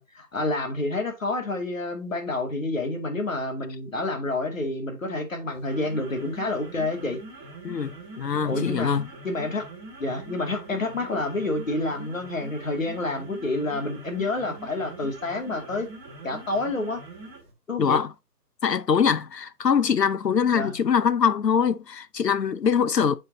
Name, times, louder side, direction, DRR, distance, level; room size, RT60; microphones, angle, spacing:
voice 1, 0.0-7.2 8.4-9.0 9.2-9.7 10.0-15.9 16.2-17.0 17.7-18.0 20.5-20.7, left 2 dB, 55° left, 2.5 m, -28 dB
sound 1, 5.5-17.5, right 2 dB, 15° right, 2.2 m, -43 dB
voice 2, 7.6-9.1 17.8-18.1 18.6-23.2, left 7 dB, 80° left, 0.9 m, -23 dB
9.2 x 6.4 x 2.7 m
figure-of-eight pair, 175°, 48 cm